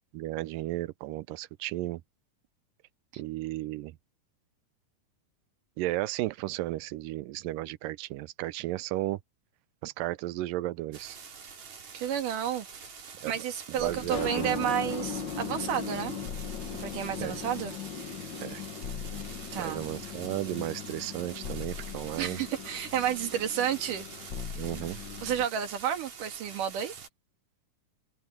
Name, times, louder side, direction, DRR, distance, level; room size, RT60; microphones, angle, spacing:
voice 1, 0.1-2.0 3.2-3.9 5.8-9.2 9.8-11.2 13.2-13.4 13.8-14.6 17.2-17.4 18.4-18.6 19.6-22.4 24.6-25.0, right 17 dB, 90° right, 2.3 m, -34 dB
sound 1, 10.9-27.1, right 6 dB, 55° right, 4.4 m, -46 dB
voice 2, 11.9-12.9 13.2-16.1 16.8-17.7 19.5-19.8 22.2-24.0 25.2-27.0, right 9 dB, 75° right, 3.5 m, -31 dB
sound 2, 13.8-25.5, left 6 dB, 60° left, 1.2 m, -39 dB
omnidirectional pair, 3.8 m